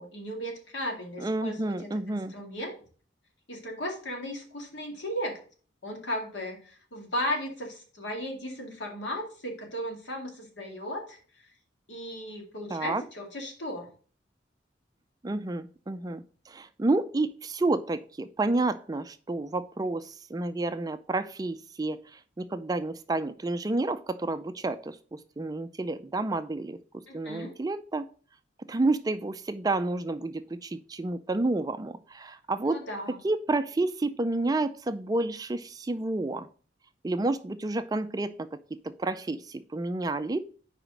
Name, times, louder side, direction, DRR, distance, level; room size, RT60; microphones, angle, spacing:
voice 1, 0.0-2.8 3.5-5.4 5.8-11.2 11.9-13.9 27.1-27.5 32.7-33.2, equal, 70° left, 2 dB, 2.1 m, -36 dB
voice 2, 1.2-2.3 12.7-13.0 15.2-26.8 27.1-28.0 28.7-32.8 33.2-36.5 37.0-38.5 39.0-40.4, right 2 dB, 20° right, 11 dB, 0.4 m, -30 dB
4.9 x 4.9 x 6.3 m, 0.41 s
head